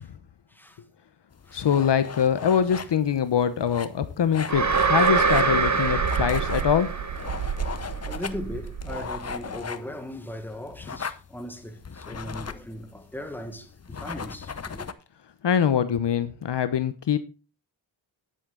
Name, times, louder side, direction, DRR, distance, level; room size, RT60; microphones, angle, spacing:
voice 1, 0.5-0.8 1.4-1.7 2.7-2.9 8.0-14.9, left 1 dB, 5° left, 1.7 m, -38 dB
sound 1, 1.3-14.9, left 6 dB, 30° left, 0.8 m, -38 dB
voice 2, 1.5-6.9 15.4-17.2, left 8 dB, 60° left, 1.0 m, -23 dB
sound 2, 4.5-7.6, right 5 dB, 35° right, 1.6 m, -24 dB
sound 3, 4.5-9.6, right 8 dB, 80° right, 1.1 m, -32 dB
10.5 x 8.5 x 3.8 m
cardioid pair, 75°, 47 cm